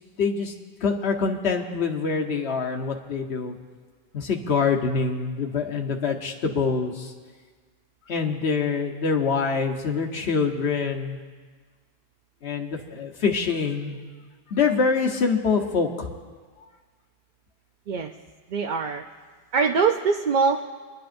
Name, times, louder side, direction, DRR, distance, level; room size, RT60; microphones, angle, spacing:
voice 1, 0.2-0.5 0.8-3.6 4.1-7.1 8.1-11.2 12.4-14.0 14.5-16.1, left 5 dB, 75° left, 3 dB, 1.3 m, -25 dB
voice 2, 18.5-19.0 19.5-20.6, right 5 dB, 55° right, 3 dB, 0.6 m, -23 dB
27.5 x 11.0 x 2.6 m, 1.5 s
omnidirectional pair, 1.1 m